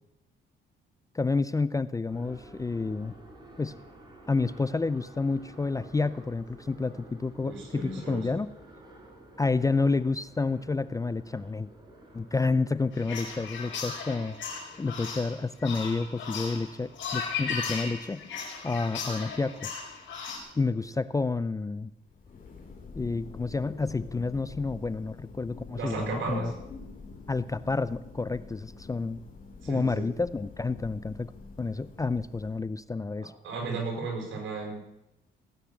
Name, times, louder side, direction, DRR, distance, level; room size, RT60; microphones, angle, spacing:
voice 1, 1.1-3.1 3.6-3.8 4.3-8.5 9.4-11.7 12.1-14.4 14.8-18.2 18.6-19.7 20.6-21.9 23.0-26.5 27.3-29.2 29.7-31.3 31.6-33.3, left 3 dB, 15° left, 16 dB, 0.5 m, -29 dB
sound 1, 2.1-21.4, right 1 dB, 20° right, 4.7 m, -53 dB
voice 2, 7.4-8.3 25.7-26.5 29.6-30.0 33.2-34.8, right 4 dB, 75° right, 2 dB, 5.9 m, -34 dB
sound 2, 12.9-20.4, left 5 dB, 70° left, 4.4 m, -36 dB
Thunder, 21.9-32.9, left 4 dB, 45° left, 4.1 m, -46 dB
17.5 x 9.0 x 7.3 m, 0.89 s
cardioid pair, 90°, 20 cm